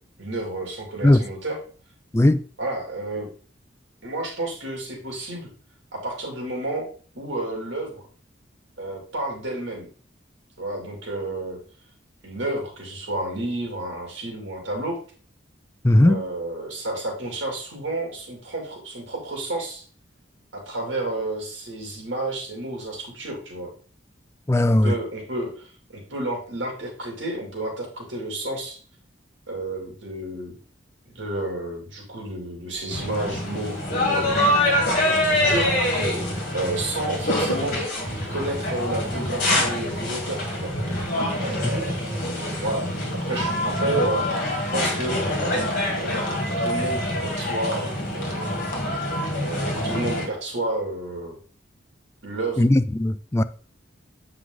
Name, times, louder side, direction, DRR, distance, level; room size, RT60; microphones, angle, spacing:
voice 1, 0.2-1.6 2.6-3.3 4.0-5.5 5.9-6.9 7.1-8.0 8.8-9.9 10.6-11.6 12.2-15.0 16.1-19.9 20.5-23.7 24.7-28.8 29.5-30.5 31.1-34.4 35.1-35.7 36.5-37.8 38.3-40.7 41.4-42.0 42.6-42.9 43.3-44.3 44.7-45.2 46.0-47.8 48.1-48.6 49.4-51.4 52.2-52.6, right 2 dB, 75° right, 2.6 m, -31 dB
voice 2, 2.1-2.5 15.8-16.2 24.5-25.0 41.6-41.7 52.6-53.4, left 1 dB, 15° left, 0.3 m, -18 dB
sound 1, 32.7-47.8, equal, 15° right, 2.7 m, -42 dB
sound 2, 32.9-50.3, left 1 dB, 45° left, 2.1 m, -25 dB
7.9 x 4.7 x 3.8 m
head